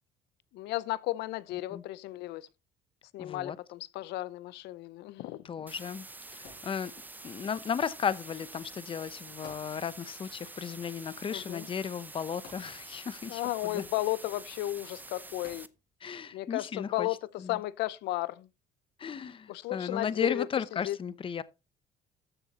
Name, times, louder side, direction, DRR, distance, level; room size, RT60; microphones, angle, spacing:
voice 1, 0.5-2.5 3.1-5.4 11.3-11.7 13.3-15.7 16.3-17.2 17.5-18.5 19.5-20.5 20.8-21.0, left 17 dB, 85° left, 0.6 m, -34 dB
voice 2, 3.2-3.6 5.4-6.9 7.2-13.8 16.0-17.1 17.4-17.6 19.0-21.4, left 7 dB, 30° left, 0.7 m, -35 dB
sound 1, 5.7-15.7, right 2 dB, 10° right, 0.6 m, -47 dB
sound 2, 6.4-7.3 9.4-10.3 10.6-10.7 12.4-13.3 15.4-16.2 16.8-16.9, left 4 dB, 70° left, 6.2 m, -54 dB
14.0 x 7.0 x 2.9 m
cardioid pair, 110°, 17 cm